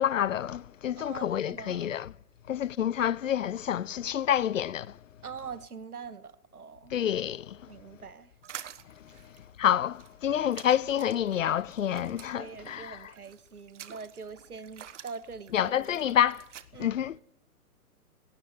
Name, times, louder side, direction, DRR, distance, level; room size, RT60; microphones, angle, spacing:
voice 1, 0.0-2.1 2.5-4.9 6.9-7.6 9.6-13.0 15.5-16.4 16.8-17.2, left 10 dB, 55° left, 0.7 m, -28 dB
voice 2, 1.0-1.9 5.2-7.0 7.7-8.3 9.1-9.3 12.3-16.2 16.7-17.0, right 5 dB, 75° right, 1.6 m, -44 dB
sound 1, 8.4-16.6, right 10 dB, 50° right, 1.4 m, -49 dB
19.0 x 17.5 x 8.4 m
figure-of-eight pair, 115°, 45 cm